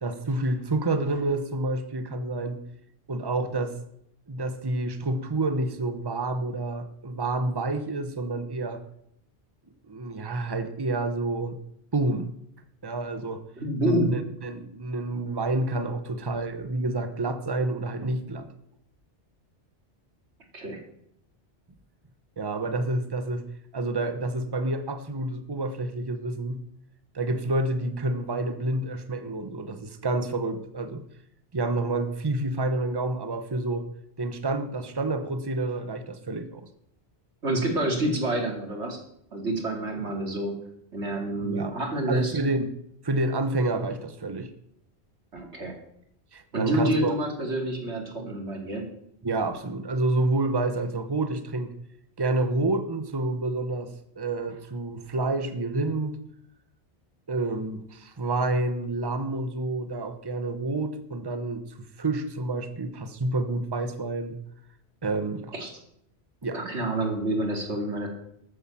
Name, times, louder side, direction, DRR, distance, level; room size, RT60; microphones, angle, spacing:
voice 1, 0.0-2.6 3.1-3.8 4.3-8.8 9.9-11.6 11.9-12.3 12.8-13.5 13.8-18.5 22.4-23.4 23.7-26.6 27.1-31.0 31.5-33.9 34.2-36.7 41.4-41.7 42.1-42.7 43.0-44.5 45.3-45.4 46.3-47.2 49.2-51.7 52.2-56.2 57.3-64.4 65.0-65.5 66.4-66.6, right 2 dB, 25° right, 1.0 m, -28 dB
voice 2, 13.6-14.2 20.5-20.8 37.4-39.0 39.3-40.6 40.9-42.3 45.3-45.7 46.5-48.9 65.5-65.7 66.5-68.1, right 1 dB, 90° right, 3.0 m, -28 dB
13.5 x 8.5 x 7.2 m
omnidirectional pair, 1.1 m